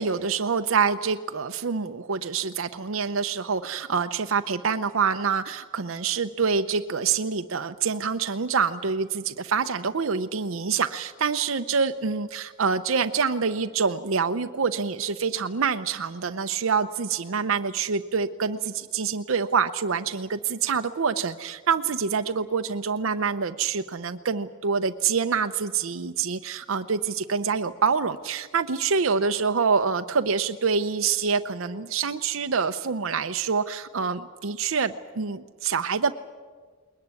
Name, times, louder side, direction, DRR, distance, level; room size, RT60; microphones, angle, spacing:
voice 1, 0.0-36.1, right 5 dB, 80° right, 8 dB, 0.7 m, -26 dB
21.0 x 21.0 x 9.6 m, 1.5 s
head